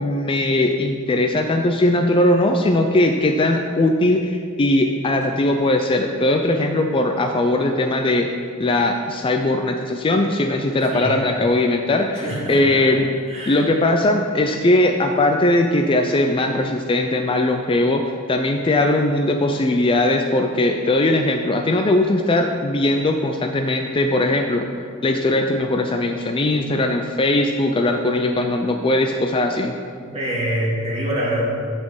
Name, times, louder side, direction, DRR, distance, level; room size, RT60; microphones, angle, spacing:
voice 1, 0.0-8.3 8.6-13.1 13.5-18.0 18.3-24.7 25.0-29.7, left 1 dB, 25° left, 4 dB, 0.4 m, -19 dB
voice 2, 12.2-12.9 13.3-13.6 30.0-31.4, right 1 dB, 30° right, -5 dB, 2.1 m, -25 dB
7.8 x 4.3 x 7.1 m, 2.2 s
head